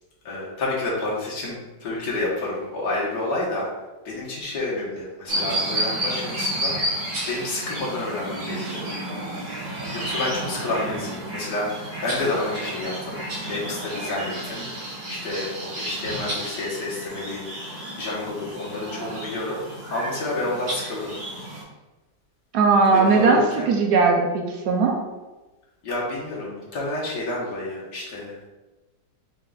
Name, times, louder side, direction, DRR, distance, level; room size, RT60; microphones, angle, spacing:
voice 1, 0.2-3.7 4.0-6.7 7.3-8.8 9.9-13.2 13.4-14.6 15.1-19.6 19.9-21.2 22.9-23.7 25.8-28.5, left 2 dB, 75° left, -5 dB, 1.8 m, -29 dB
sound 1, 5.3-21.6, right 1 dB, 55° right, 1.7 m, -31 dB
voice 2, 22.5-25.0, right 4 dB, 75° right, 2 dB, 1.1 m, -19 dB
5.4 x 3.8 x 2.3 m, 1.1 s
omnidirectional pair, 1.9 m